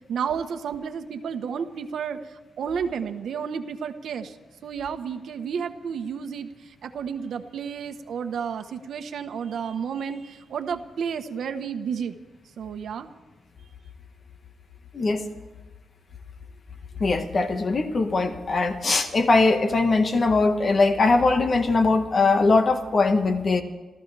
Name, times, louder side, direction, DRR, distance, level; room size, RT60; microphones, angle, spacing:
voice 1, 0.1-4.4 4.6-12.2 12.6-13.1, right 7 dB, 80° right, 8 dB, 1.2 m, -31 dB
voice 2, 17.0-23.6, left 3 dB, 40° left, 6 dB, 1.6 m, -21 dB
27.0 x 14.5 x 3.4 m, 1.2 s
wide cardioid pair, 140°, 0 cm